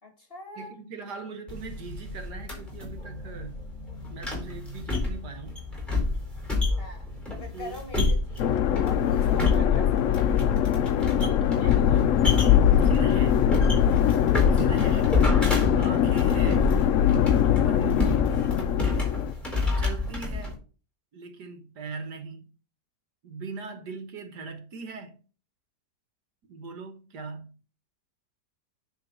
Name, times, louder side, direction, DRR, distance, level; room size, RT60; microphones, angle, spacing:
voice 1, 0.0-0.8 6.8-8.6 8.8-10.2 17.8-18.3, left 1 dB, 35° left, 2.3 m, -43 dB
voice 2, 0.6-3.6 4.1-5.6 7.5-7.8 11.2-12.2 12.8-13.5 14.5-15.2 15.8-16.8 17.6-18.5 19.8-20.6 21.1-22.5 23.2-25.2 26.5-27.5, right 4 dB, 70° right, 1.8 m, -40 dB
sound 1, 1.5-20.5, left 3 dB, ahead, 3.9 m, -29 dB
sound 2, 8.4-19.3, left 10 dB, 70° left, 0.7 m, -22 dB
10.0 x 3.7 x 5.5 m
omnidirectional pair, 1.9 m